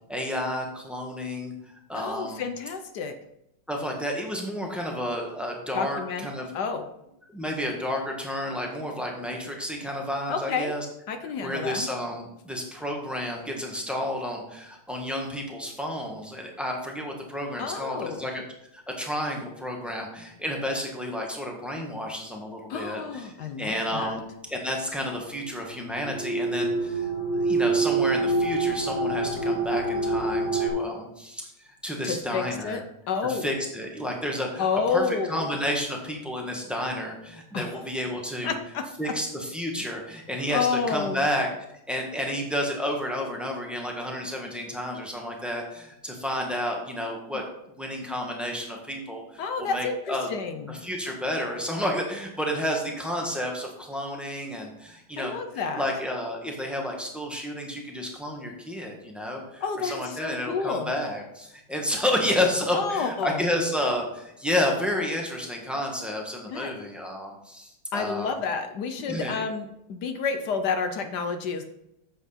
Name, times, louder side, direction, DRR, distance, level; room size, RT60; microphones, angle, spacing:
voice 1, 0.1-1.5 1.9-2.4 3.7-6.5 7.3-10.8 11.2-18.4 18.7-23.3 23.6-32.8 33.2-38.6 39.0-41.5 41.9-47.4 47.7-50.3 50.7-68.3 69.1-69.4, left 1 dB, ahead, 0 dB, 1.1 m, -31 dB
voice 2, 1.9-3.1 5.7-6.3 6.5-6.8 10.3-10.7 11.1-11.9 17.6-18.3 22.7-24.2 32.0-33.5 34.6-35.5 37.5-37.8 38.4-39.1 40.5-41.3 49.4-50.8 55.2-55.9 59.6-60.9 62.7-63.5 66.5-66.7 67.9-71.6, left 5 dB, 65° left, 8 dB, 1.1 m, -30 dB
sound 1, 26.0-30.7, right 3 dB, 45° left, 2.5 m, -26 dB
8.2 x 7.3 x 4.2 m, 0.82 s
omnidirectional pair, 2.3 m